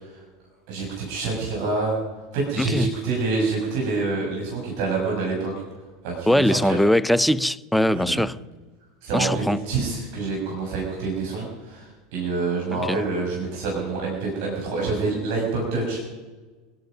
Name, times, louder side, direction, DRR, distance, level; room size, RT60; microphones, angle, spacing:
voice 1, 0.7-2.0 2.3-5.5 6.0-6.8 7.9-8.2 9.0-16.0, right 3 dB, 65° right, 6.7 m, -27 dB
voice 2, 2.6-2.9 6.3-8.4 9.1-9.6 12.7-13.0, left 1 dB, ahead, 0.6 m, -21 dB
26.0 x 10.5 x 5.4 m
hypercardioid pair, 95°, 0 cm